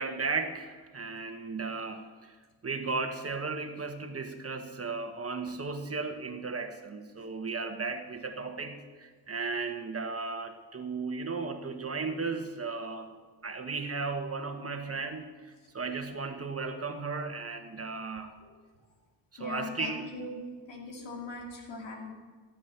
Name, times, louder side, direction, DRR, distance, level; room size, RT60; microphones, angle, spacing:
voice 1, 0.0-2.3 2.6-13.1 13.4-15.3 15.7-18.3 19.4-20.1, right 4 dB, 35° right, 6 dB, 1.5 m, -35 dB
voice 2, 19.4-20.4 20.7-22.1, left 2 dB, 85° left, 0 dB, 2.9 m, -40 dB
15.0 x 8.6 x 7.3 m, 1.4 s
cardioid pair, 85°, 43 cm